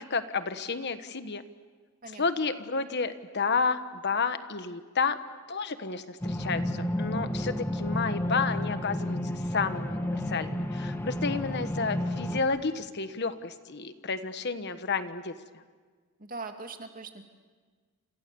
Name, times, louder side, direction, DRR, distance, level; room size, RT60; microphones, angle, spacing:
voice 1, 0.0-1.4 2.2-5.2 5.5-15.3, left 4 dB, 50° left, 10 dB, 1.3 m, -31 dB
sound 1, 6.2-12.4, left 1 dB, 10° left, 1.8 m, -31 dB
voice 2, 16.2-17.2, right 3 dB, 40° right, 5 dB, 2.5 m, -40 dB
29.5 x 28.0 x 7.0 m, 1.5 s
head